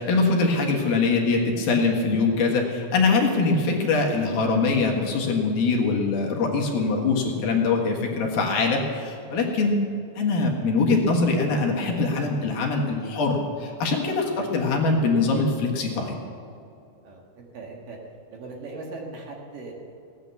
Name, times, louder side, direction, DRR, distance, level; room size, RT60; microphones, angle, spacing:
voice 1, 0.0-9.8 10.2-16.2, left 3 dB, 65° left, 0 dB, 3.3 m, -23 dB
voice 2, 17.0-18.0 18.3-19.7, right 3 dB, 60° right, -1 dB, 3.3 m, -39 dB
17.5 x 10.0 x 7.0 m, 2.7 s
omnidirectional pair, 4.7 m